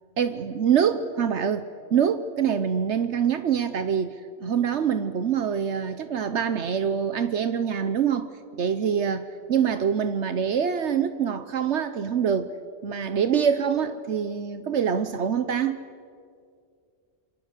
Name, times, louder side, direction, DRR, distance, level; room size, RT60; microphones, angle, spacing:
voice 1, 0.2-8.3 8.6-12.5 12.8-15.8, right 7 dB, 75° right, 11 dB, 1.2 m, -25 dB
27.5 x 25.0 x 6.7 m, 2.2 s
omnidirectional pair, 1.2 m